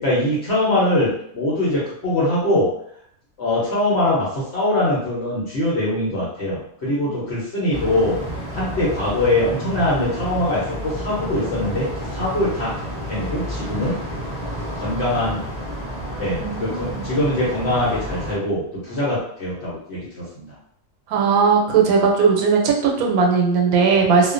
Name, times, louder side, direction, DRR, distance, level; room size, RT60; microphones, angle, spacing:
voice 1, 0.0-2.7 3.4-8.2 8.5-12.7 13.1-13.9 14.8-15.4 16.2-20.5, left 1 dB, 55° left, -7 dB, 0.9 m, -22 dB
sound 1, 7.7-18.4, equal, 25° right, 0.7 m, -30 dB
voice 2, 16.4-17.1 21.1-24.3, right 5 dB, 85° right, 0 dB, 1.0 m, -18 dB
2.4 x 2.2 x 2.4 m, 0.69 s
omnidirectional pair, 1.5 m